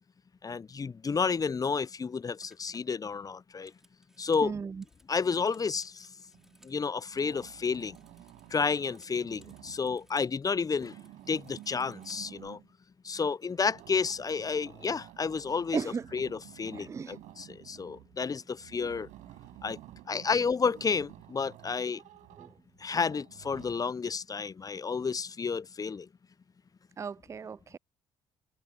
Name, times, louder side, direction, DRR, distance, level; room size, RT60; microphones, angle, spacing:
voice 1, 0.4-3.7 4.2-4.5 5.1-5.9 6.6-8.0 8.5-10.9 11.3-12.6 13.0-15.8 16.1-19.1 19.6-19.8 20.1-22.0 22.8-26.1, left 5 dB, 25° left, 0.6 m, -31 dB
sound 1, 2.4-6.8 7.1-10.3 10.6-12.5, equal, 5° right, 5.9 m, -65 dB
voice 2, 4.4-4.8 15.7-16.1 16.7-17.2 22.4-22.5 27.0-27.8, right 5 dB, 20° right, 0.4 m, -36 dB
sound 2, 6.3-6.8 7.1-10.1 10.6-12.7 13.5-23.8, right 16 dB, 70° right, 6.8 m, -52 dB
hypercardioid pair, 50°, 13 cm